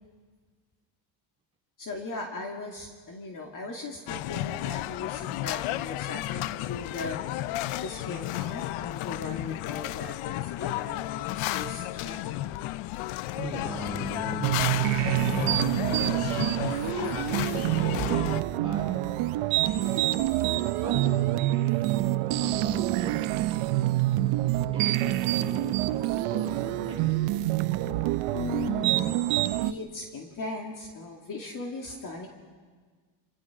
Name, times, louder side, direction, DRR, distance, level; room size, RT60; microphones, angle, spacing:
voice 1, 1.8-7.2 7.8-12.5 28.3-29.2 29.6-32.3, left 3 dB, 40° left, 1 dB, 2.5 m, -38 dB
sound 1, 4.1-18.4, left 16 dB, 90° left, 0.6 m, -33 dB
voice 2, 13.3-16.5 16.9-18.8 19.6-20.1 20.7-21.1 22.4-23.3 24.7-25.6 25.9-27.2, right 2 dB, 10° right, -4 dB, 7.5 m, -38 dB
sound 2, 14.4-29.7, right 16 dB, 85° right, 0.8 m, -26 dB
28.0 x 27.5 x 5.0 m, 1.5 s
cardioid pair, 145°, 48 cm